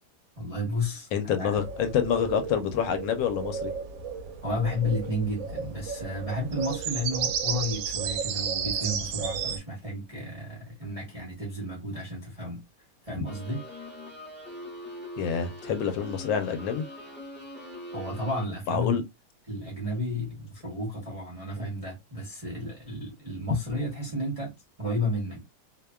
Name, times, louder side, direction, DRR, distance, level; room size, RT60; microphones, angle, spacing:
voice 1, 0.4-1.1 1.4-1.6 4.4-12.6 13.0-13.6 17.9-19.0 19.5-25.4, left 1 dB, 30° right, 0.7 m, -32 dB
voice 2, 1.1-3.7 15.2-16.9 18.7-19.0, left 7 dB, 80° left, 1.3 m, -27 dB
sound 1, 1.5-9.6, right 6 dB, 80° right, 1.3 m, -33 dB
sound 2, 13.2-18.4, left 1 dB, 15° left, 0.4 m, -42 dB
3.1 x 2.1 x 2.2 m
omnidirectional pair, 2.0 m